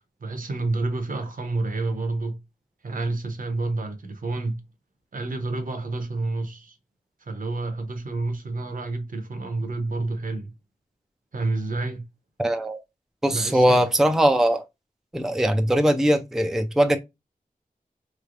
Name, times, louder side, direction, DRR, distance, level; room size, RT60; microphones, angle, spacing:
voice 1, 0.2-2.4 2.8-4.6 5.1-6.8 7.2-10.5 11.3-12.0 13.3-13.8, right 2 dB, 65° right, 0.8 m, -29 dB
voice 2, 12.4-12.8 13.2-14.6 15.1-17.0, right 1 dB, 5° right, 0.4 m, -20 dB
3.2 x 3.0 x 2.5 m
wide cardioid pair, 60°, 15 cm